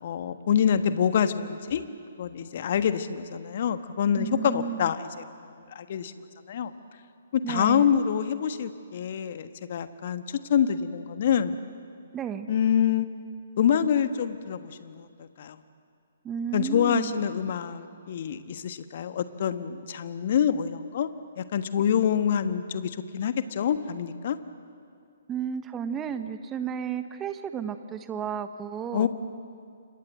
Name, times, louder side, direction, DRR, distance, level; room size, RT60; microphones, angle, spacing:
voice 1, 0.0-1.8 2.2-5.0 5.7-6.1 6.5-6.7 7.3-11.6 12.5-13.1 13.6-15.6 16.5-21.1 21.4-24.4 28.9-29.1, left 8 dB, 50° left, 11 dB, 1.4 m, -26 dB
voice 2, 4.1-4.9 7.4-8.0 12.1-12.5 16.2-17.2 25.3-29.1, right 8 dB, 15° right, 10 dB, 1.2 m, -33 dB
29.5 x 25.5 x 7.7 m, 2.3 s
figure-of-eight pair, 130°, 0 cm